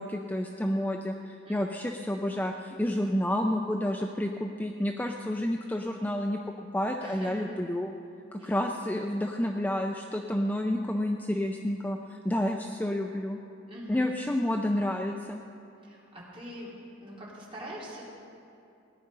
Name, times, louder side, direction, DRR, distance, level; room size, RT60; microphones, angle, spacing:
voice 1, 0.0-6.4 6.7-7.9 8.3-13.4 13.9-15.4, left 1 dB, 10° left, 3 dB, 0.4 m, -30 dB
voice 2, 1.4-1.8 7.0-7.6 8.4-8.6 13.7-14.1 15.8-16.7 17.0-18.0, equal, 25° right, -6 dB, 3.0 m, -44 dB
17.5 x 9.9 x 5.4 m, 2.7 s
head